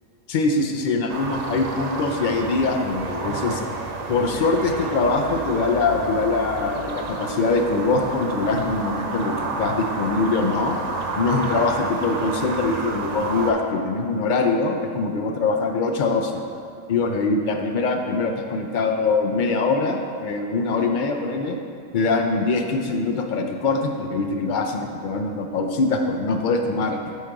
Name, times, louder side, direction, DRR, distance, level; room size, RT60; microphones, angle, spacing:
voice 1, 0.3-3.7 4.1-10.7 11.2-16.4 16.9-21.6 21.9-27.0, left 3 dB, 65° left, 4 dB, 0.4 m, -23 dB
sound 1, 1.1-13.5, right 3 dB, 60° right, 0.4 m, -30 dB
8.2 x 3.8 x 4.6 m, 2.3 s
omnidirectional pair, 1.4 m